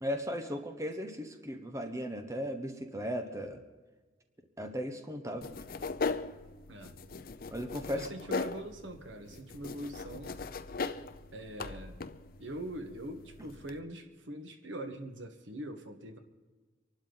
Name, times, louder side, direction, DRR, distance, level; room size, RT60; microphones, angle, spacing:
voice 1, 0.0-3.6 4.6-5.5 7.5-8.1, equal, 15° right, 6 dB, 1.1 m, -36 dB
sound 1, 5.4-13.8, left 4 dB, 50° left, 0.6 m, -39 dB
voice 2, 7.9-10.4 11.3-12.0 12.4-16.2, right 1 dB, 90° right, 6 dB, 1.5 m, -43 dB
25.0 x 12.0 x 4.0 m, 1.3 s
head